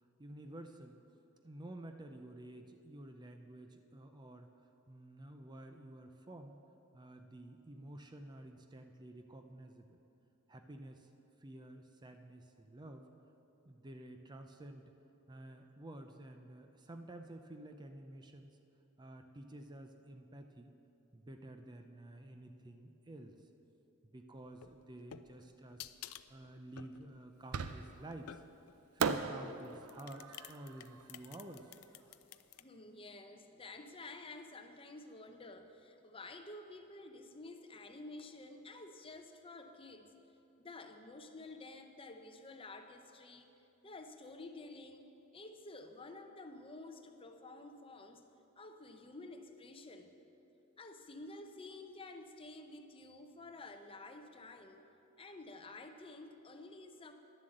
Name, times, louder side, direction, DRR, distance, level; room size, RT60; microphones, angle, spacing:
voice 1, 0.2-1.0 1.4-6.6 6.9-10.0 10.5-11.1 11.4-13.1 13.6-14.8 15.3-18.5 19.0-20.7 21.1-23.4 24.1-28.4 28.9-31.7, right 1 dB, 20° right, 5 dB, 0.5 m, -51 dB
sound 1, 24.5-28.8 29.6-32.6, left 11 dB, 75° left, 0.4 m, -52 dB
Fireworks, 27.5-28.2 29.0-32.1, right 6 dB, 85° right, 0.5 m, -39 dB
voice 2, 32.6-40.1 40.6-43.5 43.8-48.3 48.6-50.1 50.8-54.9 55.2-57.1, left 2 dB, 25° left, 6 dB, 0.7 m, -51 dB
11.0 x 7.4 x 7.7 m, 2.8 s
head